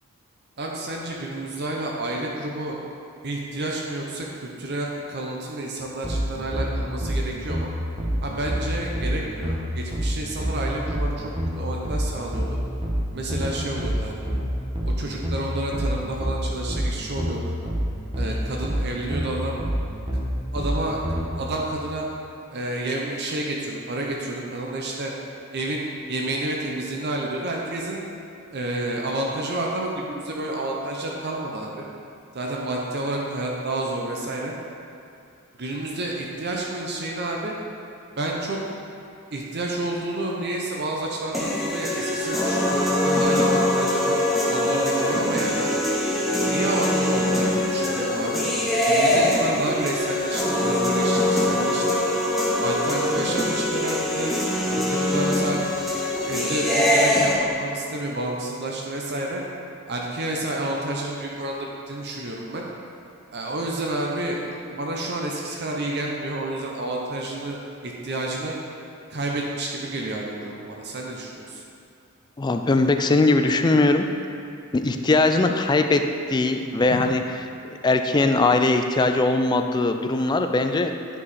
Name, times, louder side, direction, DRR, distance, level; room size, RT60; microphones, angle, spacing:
voice 1, 0.6-2.8 3.2-7.7 8.2-11.3 11.6-12.6 13.1-14.2 14.8-17.5 18.2-19.6 20.5-21.0 21.4-22.0 22.5-25.1 25.5-28.0 28.5-31.9 32.3-34.5 35.6-37.5 38.2-38.6 39.3-44.2 44.5-45.7 46.4-48.4 48.9-52.0 52.6-54.3 54.7-55.6 56.2-59.4 59.9-62.6 63.3-64.4 64.7-68.5 69.1-71.6 76.9-77.0, right 2 dB, 50° right, -1 dB, 0.7 m, -30 dB
sound 1, 6.0-21.3, equal, 25° right, 1.1 m, -26 dB
sound 2, 41.3-57.3, left 1 dB, ahead, 1.1 m, -23 dB
voice 2, 72.4-74.1 74.7-76.0 76.3-77.2 77.8-80.9, left 2 dB, 20° left, 6 dB, 0.3 m, -20 dB
10.0 x 4.7 x 4.2 m, 2.5 s
head